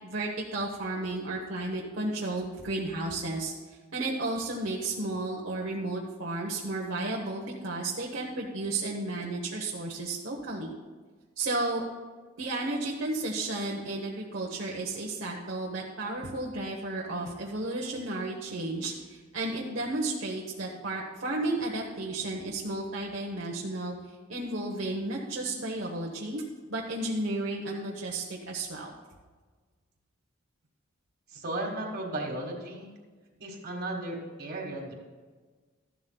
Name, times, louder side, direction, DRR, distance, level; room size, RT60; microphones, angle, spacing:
voice 1, 0.0-3.5 3.9-10.7 11.4-11.8 12.4-23.9 24.3-26.4 26.7-28.9, right 2 dB, 90° right, -2 dB, 1.1 m, -33 dB
voice 2, 31.3-32.9 33.4-34.9, right 1 dB, 55° right, -1 dB, 1.5 m, -35 dB
13.5 x 11.5 x 2.3 m, 1.4 s
head